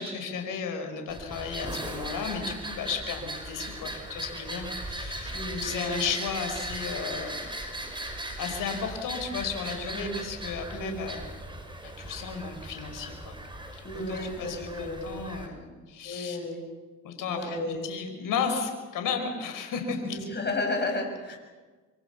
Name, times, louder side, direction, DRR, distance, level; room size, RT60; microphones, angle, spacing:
voice 1, 0.0-7.4 8.4-11.2 11.8-13.4 13.7-16.4 17.0-17.6 17.8-20.2, left 6 dB, 60° left, 5 dB, 5.4 m, -34 dB
sound 1, 1.1-15.5, right 1 dB, 15° right, 5.8 m, -38 dB
voice 2, 5.3-5.9 9.9-10.2 10.7-11.0 13.8-15.1 16.0-16.6 17.3-17.8 20.1-21.4, left 2 dB, 30° left, 4 dB, 7.6 m, -33 dB
25.0 x 25.0 x 7.2 m, 1.3 s
hypercardioid pair, 70°, 36 cm